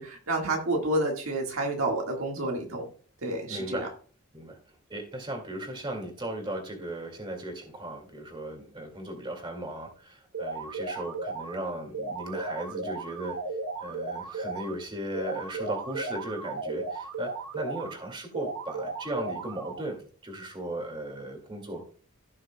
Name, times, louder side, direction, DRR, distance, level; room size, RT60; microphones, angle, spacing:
voice 1, 0.0-2.9 3.2-3.9, right 2 dB, 65° right, 1 dB, 1.7 m, -29 dB
voice 2, 3.5-3.9 4.3-4.6 4.9-13.4 13.8-21.8, right 1 dB, 20° right, 3 dB, 2.1 m, -37 dB
sound 1, 10.3-11.5 11.9-14.7 15.1-17.9 18.3-19.9, right 3 dB, 85° right, 1.1 m, -35 dB
16.5 x 6.4 x 2.2 m, 0.42 s
head